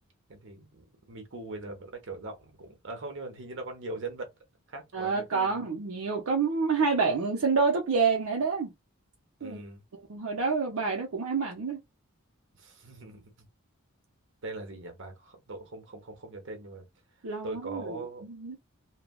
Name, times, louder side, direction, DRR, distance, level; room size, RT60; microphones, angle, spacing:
voice 1, 0.3-4.3 4.7-5.6 9.4-9.8 12.6-13.5 14.4-16.8 17.4-18.2, right 2 dB, 60° right, 1.0 m, -41 dB
voice 2, 4.9-8.7 9.4-9.6 10.1-11.8 17.2-18.0 18.2-18.6, right 4 dB, 75° right, 0.6 m, -28 dB
3.2 x 2.2 x 2.3 m
head